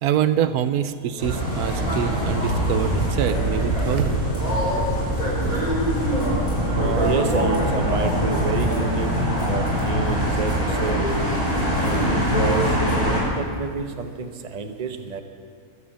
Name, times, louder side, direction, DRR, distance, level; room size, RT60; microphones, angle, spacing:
voice 1, 0.0-4.2 5.4-5.9 9.6-9.7, right 10 dB, 75° right, 12 dB, 1.1 m, -25 dB
sound 1, 1.2-13.2, equal, 25° left, 5.5 m, -23 dB
voice 2, 6.7-9.1 9.5-11.0 11.8-15.2, right 4 dB, 30° right, 6 dB, 0.9 m, -28 dB
21.5 x 8.3 x 7.4 m, 2.2 s
omnidirectional pair, 1.6 m